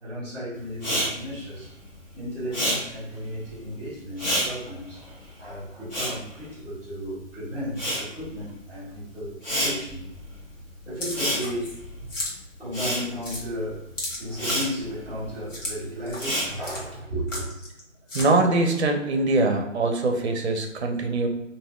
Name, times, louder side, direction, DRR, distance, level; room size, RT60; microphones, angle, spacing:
voice 1, 0.0-1.7 2.1-10.0 10.8-11.7 12.6-13.9 14.2-17.5, equal, 5° left, -12 dB, 1.4 m, -34 dB
Respiratory sounds, 0.7-7.2 7.5-16.9, equal, 35° left, 1.2 m, -31 dB
sound 1, 11.0-11.8 12.1-12.3 12.7-12.8 13.2-13.4 14.0-14.7 15.5-15.7 16.1-16.3 16.6-16.8 17.3-17.8 18.1-18.3, left 1 dB, 70° left, 1.2 m, -34 dB
voice 2, 18.1-21.3, right 2 dB, 55° right, 4 dB, 0.6 m, -23 dB
3.3 x 2.5 x 2.3 m, 0.89 s
figure-of-eight pair, 150°, 39 cm